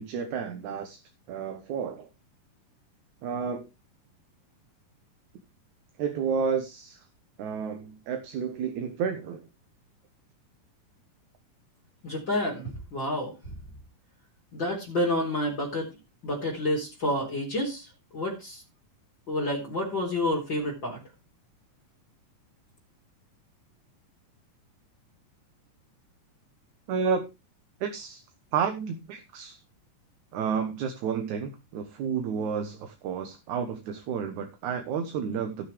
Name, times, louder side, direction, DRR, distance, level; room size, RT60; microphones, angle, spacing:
voice 1, 0.0-2.1 3.2-3.6 6.0-7.0 7.4-9.4 26.9-27.3 27.8-28.2 28.5-29.6 30.3-35.7, right 6 dB, 70° right, 6 dB, 2.5 m, -31 dB
voice 2, 12.0-13.3 14.5-15.9 16.2-17.9 18.1-18.6 19.3-21.0, left 1 dB, 35° left, -3 dB, 4.5 m, -29 dB
18.5 x 6.7 x 3.4 m, 0.25 s
omnidirectional pair, 3.8 m